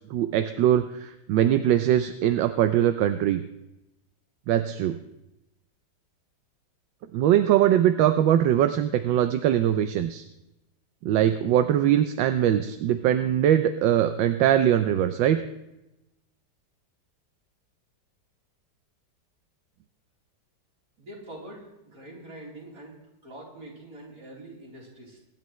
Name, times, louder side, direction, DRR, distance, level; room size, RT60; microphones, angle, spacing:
voice 1, 0.1-3.4 4.5-5.0 7.1-10.2 11.0-15.4, right 11 dB, 80° right, 9 dB, 1.4 m, -22 dB
voice 2, 21.0-23.0 23.2-25.2, right 1 dB, 50° right, -3 dB, 4.0 m, -44 dB
23.5 x 11.0 x 3.1 m, 0.93 s
omnidirectional pair, 2.0 m